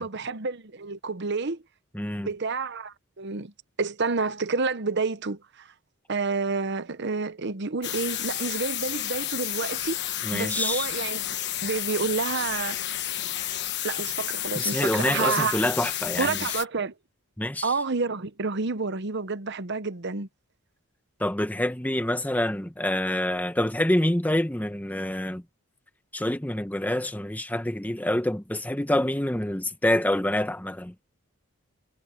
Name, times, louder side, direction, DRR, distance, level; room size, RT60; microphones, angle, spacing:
voice 1, 0.0-1.6 2.2-3.5 3.8-5.7 6.1-11.4 11.6-12.8 13.8-15.6 16.2-16.9 17.6-20.3, right 4 dB, 50° right, 0.9 m, -29 dB
voice 2, 1.9-2.3 10.2-10.9 14.5-16.6 17.4-17.7 21.2-25.4 26.1-30.9, left 1 dB, 5° left, 0.9 m, -26 dB
sound 1, 7.8-16.6, left 12 dB, 50° left, 1.2 m, -31 dB
head